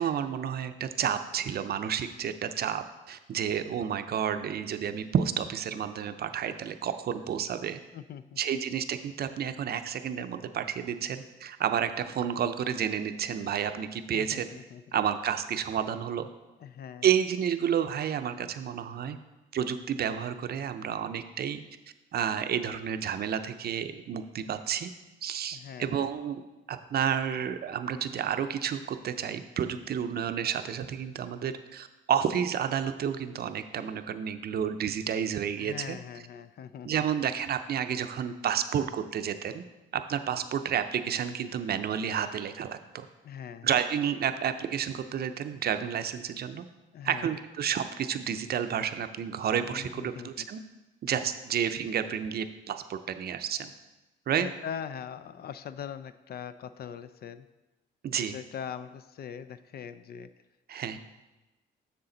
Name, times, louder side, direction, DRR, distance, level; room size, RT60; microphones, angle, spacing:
voice 1, 0.0-7.8 8.4-14.5 14.9-16.3 17.0-19.2 19.5-21.6 22.1-24.9 25.2-26.4 26.7-36.0 36.8-39.6 39.9-43.1 43.6-46.6 47.0-50.6 51.0-53.7 54.3-54.5 58.0-58.4 60.7-61.0, right 8 dB, 55° right, 9 dB, 0.6 m, -30 dB
voice 2, 7.9-8.4 14.1-14.8 16.6-17.1 25.5-26.1 35.6-36.9 43.2-43.8 46.9-47.3 49.6-50.5 54.3-57.5 58.2-60.3, left 8 dB, 55° left, 12 dB, 0.4 m, -41 dB
7.0 x 6.8 x 3.9 m, 1.1 s
cardioid pair, 90°, 20 cm